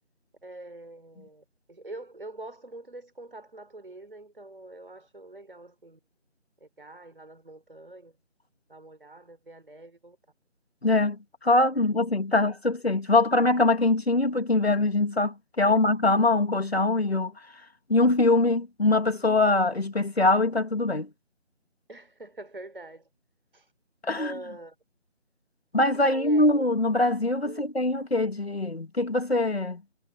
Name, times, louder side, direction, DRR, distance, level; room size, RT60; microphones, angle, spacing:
voice 1, 0.4-6.0 6.6-8.1 8.7-10.2 11.8-11.9 12.3-12.5 15.6-15.8 21.9-23.1 23.5-23.7 24.2-24.8 25.9-26.4 27.4-27.7, right 2 dB, 45° right, 4.4 m, -44 dB
voice 2, 10.8-17.3 17.9-21.1 24.0-24.3 25.7-29.8, left 2 dB, 55° left, 2.6 m, -23 dB
figure-of-eight pair, 170°, 37 cm